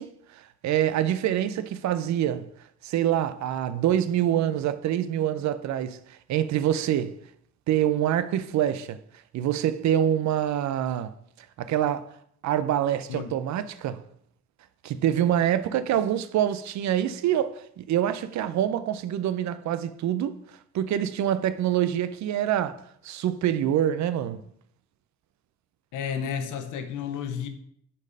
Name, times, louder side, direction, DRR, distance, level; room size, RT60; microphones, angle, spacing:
voice 1, 0.0-2.5 2.8-7.2 7.7-9.0 9.3-11.1 11.6-12.1 12.4-14.0 14.8-20.4 20.7-24.4, right 11 dB, 65° right, 0.5 m, -26 dB
voice 2, 25.9-27.5, left 7 dB, 85° left, 0.9 m, -32 dB
4.9 x 4.3 x 5.4 m
cardioid pair, 90°, 30 cm